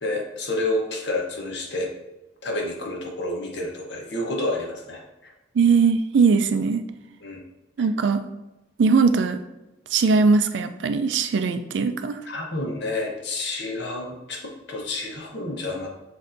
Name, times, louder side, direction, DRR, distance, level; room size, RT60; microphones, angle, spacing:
voice 1, 0.0-1.9 2.4-5.3 7.2-7.4 12.2-15.9, left 2 dB, 70° left, 0 dB, 0.9 m, -29 dB
voice 2, 5.6-6.8 7.8-8.2 8.8-9.4 9.9-12.1, right 5 dB, 80° right, 9 dB, 0.4 m, -20 dB
6.4 x 2.6 x 2.6 m, 0.99 s
head